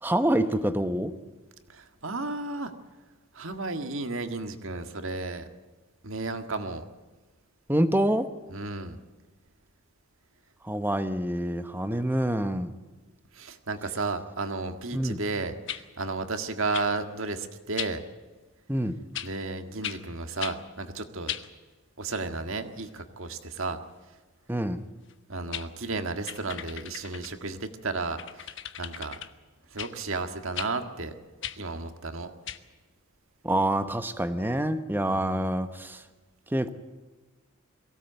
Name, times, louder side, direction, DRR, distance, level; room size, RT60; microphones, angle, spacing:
voice 1, 0.0-1.1 7.7-8.3 10.6-12.7 14.9-15.2 18.7-19.0 24.5-24.8 33.4-36.0 36.5-36.7, right 1 dB, 10° right, 10 dB, 0.9 m, -26 dB
voice 2, 1.7-2.7 3.3-5.5 6.0-6.8 8.5-9.0 13.3-18.0 19.2-21.4 22.0-23.8 25.3-28.5 28.8-29.2 29.7-31.1 31.6-32.3 35.1-35.5, right 3 dB, 65° right, 7 dB, 1.8 m, -33 dB
sound 1, 15.7-15.8 16.7-16.9 17.8-17.9 19.1-19.3 19.8-20.0 20.4-20.6 21.3-21.5 25.1-25.2 25.5-25.7 26.3-27.3 28.2-29.3 29.8-29.9 30.5-30.7 31.4-31.6 32.5-32.6, left 10 dB, 55° left, 1.1 m, -36 dB
22.5 x 17.0 x 8.1 m, 1.3 s
head